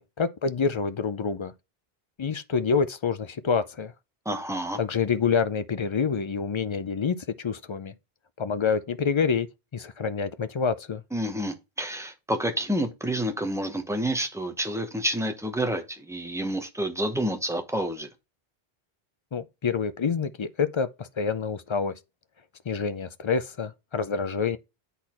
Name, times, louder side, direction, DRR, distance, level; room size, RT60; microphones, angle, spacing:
voice 1, 0.0-1.5 2.2-3.9 4.8-7.9 8.4-9.5 9.7-11.0 19.3-21.9 22.7-24.6, left 5 dB, 45° left, 0.4 m, -27 dB
voice 2, 4.2-4.8 11.1-18.1, right 1 dB, 5° right, 0.8 m, -29 dB
8.1 x 4.2 x 4.2 m
omnidirectional pair, 1.0 m